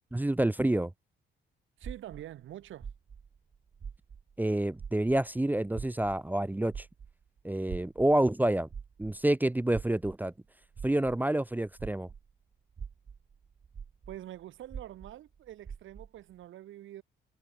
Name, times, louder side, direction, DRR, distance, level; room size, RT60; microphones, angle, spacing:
voice 1, 0.1-0.9 4.4-6.9 7.4-8.7 9.0-10.3 10.8-12.1, right 1 dB, 10° right, 0.8 m, -28 dB
sound 1, 1.8-4.5 4.7-12.3 12.7-16.2, right 6 dB, 35° right, 0.9 m, -45 dB
voice 2, 1.8-2.9 14.1-17.0, right 13 dB, 80° right, 2.9 m, -45 dB
cardioid pair, 90°, 20 cm